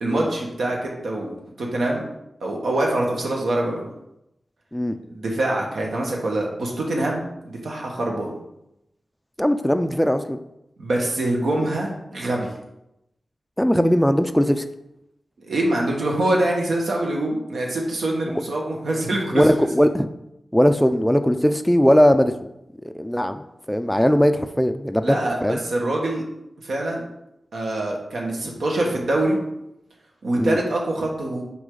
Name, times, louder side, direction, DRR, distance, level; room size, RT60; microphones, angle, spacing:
voice 1, 0.0-2.0 2.4-3.9 5.1-8.3 10.8-12.5 15.4-19.7 25.0-26.2 26.6-27.0 27.5-29.4 30.2-31.4, right 1 dB, 85° right, -1 dB, 1.5 m, -24 dB
voice 2, 9.4-10.4 13.6-14.6 19.3-20.1 20.5-22.3 22.8-23.4 23.7-25.6 30.4-30.6, equal, 5° left, 9 dB, 0.3 m, -19 dB
6.2 x 4.8 x 3.9 m, 0.86 s
wide cardioid pair, 125°, 0 cm